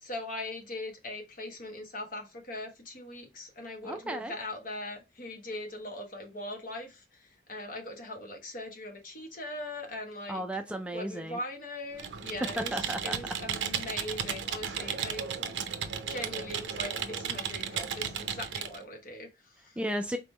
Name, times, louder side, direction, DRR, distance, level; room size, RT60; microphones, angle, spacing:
voice 1, 0.0-10.4 10.9-15.3 15.9-19.8, left 2 dB, 45° left, 1.2 m, -40 dB
voice 2, 3.8-4.3 10.3-11.4 12.6-13.2 19.8-20.2, right 1 dB, 5° right, 0.3 m, -34 dB
Computer keyboard, 11.9-18.8, right 7 dB, 80° right, 0.5 m, -35 dB
3.9 x 3.5 x 3.2 m
head